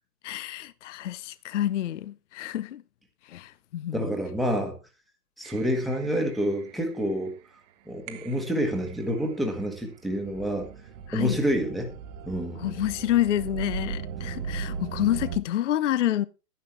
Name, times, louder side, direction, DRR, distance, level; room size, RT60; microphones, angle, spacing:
voice 1, 0.2-2.8 3.2-4.1 11.1-11.4 12.6-16.2, left 12 dB, 50° left, 0.5 m, -28 dB
voice 2, 3.9-4.8 5.4-7.3 7.9-10.7 11.1-11.9 12.3-12.7, equal, ahead, 1.3 m, -28 dB
sound 1, 5.4-7.3 8.1-15.4, right 6 dB, 25° right, 0.9 m, -38 dB
11.0 x 10.0 x 3.2 m
hypercardioid pair, 145°, 50 cm